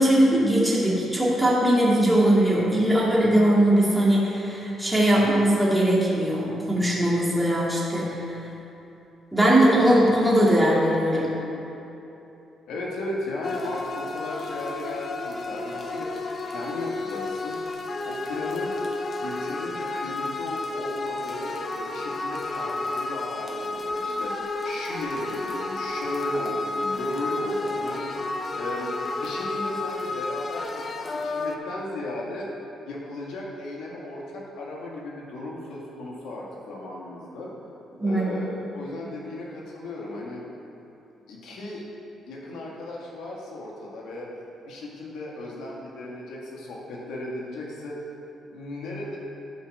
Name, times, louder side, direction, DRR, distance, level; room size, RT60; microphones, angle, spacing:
voice 1, 0.0-8.2 9.3-11.3 38.0-38.4, right 1 dB, 5° right, -6 dB, 2.3 m, -20 dB
voice 2, 12.7-16.1 16.5-17.6 18.0-18.8 19.2-28.1 28.5-32.5 32.8-37.5 38.0-40.4 41.3-41.8 42.3-44.3 44.6-48.0 48.5-49.2, left 1 dB, 80° left, -3 dB, 2.1 m, -35 dB
sound 1, 13.4-31.6, left 3 dB, 40° left, 0.7 m, -31 dB
11.0 x 4.9 x 6.7 m, 3.0 s
cardioid pair, 90°, 0 cm